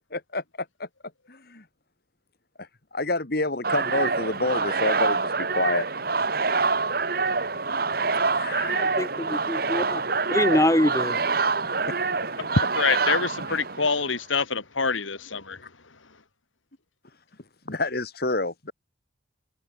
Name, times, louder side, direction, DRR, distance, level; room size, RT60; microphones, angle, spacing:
voice 1, 0.1-0.9 1.3-1.7 2.6-5.9 8.3-8.9 11.9-12.0 13.5-13.6 15.6-15.7 17.7-18.7, left 2 dB, 50° left, 2.1 m, -29 dB
sound 1, 3.6-14.1, right 4 dB, 50° right, 2.0 m, -26 dB
voice 2, 8.7-10.0 10.3-11.2, left 1 dB, 15° left, 1.4 m, -24 dB
voice 3, 12.6-15.6, left 4 dB, 85° left, 2.5 m, -25 dB
head